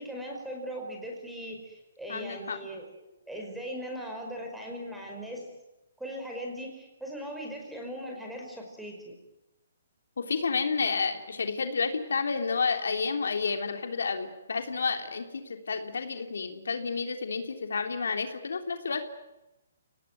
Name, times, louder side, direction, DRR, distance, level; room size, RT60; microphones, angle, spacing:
voice 1, 0.0-5.5 6.0-9.2, equal, ahead, 1 dB, 5.4 m, -39 dB
voice 2, 2.1-2.6 10.2-19.0, left 5 dB, 85° left, 5 dB, 3.4 m, -30 dB
29.5 x 18.5 x 9.4 m, 0.97 s
hypercardioid pair, 165°, 0 cm